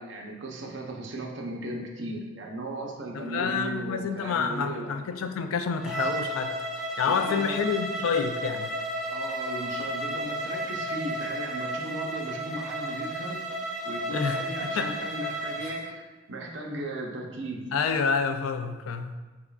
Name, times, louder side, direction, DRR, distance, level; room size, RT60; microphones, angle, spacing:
voice 1, 0.0-4.9 7.0-7.6 9.1-13.4 13.8-17.7, right 1 dB, 60° right, 0.6 m, -37 dB
voice 2, 3.1-6.6 7.0-8.7 14.1-14.9 17.7-19.1, left 6 dB, 85° left, 0.3 m, -28 dB
Bowed string instrument, 5.8-15.8, right 1 dB, ahead, 0.3 m, -33 dB
4.7 x 3.5 x 2.3 m
head